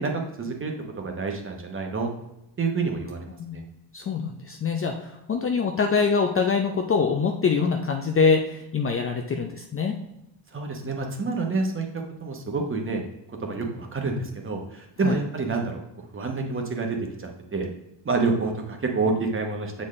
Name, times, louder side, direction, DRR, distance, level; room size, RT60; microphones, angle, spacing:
voice 1, 0.0-2.1 2.6-3.6 10.5-13.1 13.4-15.8 16.1-17.7 18.0-19.8, right 3 dB, 25° right, 2 dB, 1.0 m, -28 dB
voice 2, 3.9-9.9 15.0-15.2, left 5 dB, 30° left, 3 dB, 0.5 m, -24 dB
6.9 x 4.2 x 3.2 m, 0.88 s
cardioid pair, 100°, 48 cm